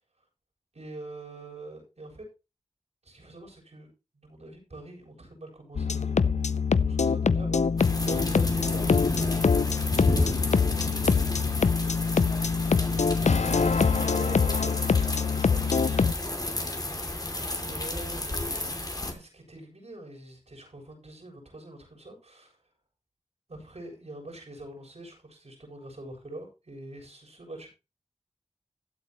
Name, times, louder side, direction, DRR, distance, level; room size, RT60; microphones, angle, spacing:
voice 1, 0.7-2.2 3.0-6.4 6.8-11.1 13.8-16.4 16.9-22.6 23.5-27.7, right 1 dB, 65° right, -1 dB, 7.4 m, -44 dB
sound 1, 5.8-16.1, left 5 dB, 75° left, 0.6 m, -24 dB
sound 2, 7.8-19.1, left 1 dB, 30° left, 2.7 m, -32 dB
15.5 x 8.6 x 3.0 m, 0.29 s
wide cardioid pair, 50°, 12 cm